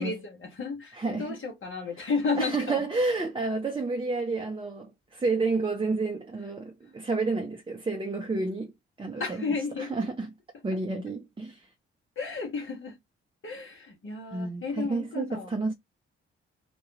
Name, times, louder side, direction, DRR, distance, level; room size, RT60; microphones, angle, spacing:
voice 1, 0.0-2.9 9.2-9.9 10.7-10.8 12.2-13.0 13.4-15.5, left 4 dB, 45° left, 1.0 m, -32 dB
voice 2, 0.9-1.3 2.4-8.7 9.0-10.3 10.6-11.7 14.3-15.7, right 3 dB, 15° right, 0.6 m, -30 dB
2.3 x 2.2 x 2.9 m
hypercardioid pair, 45°, 29 cm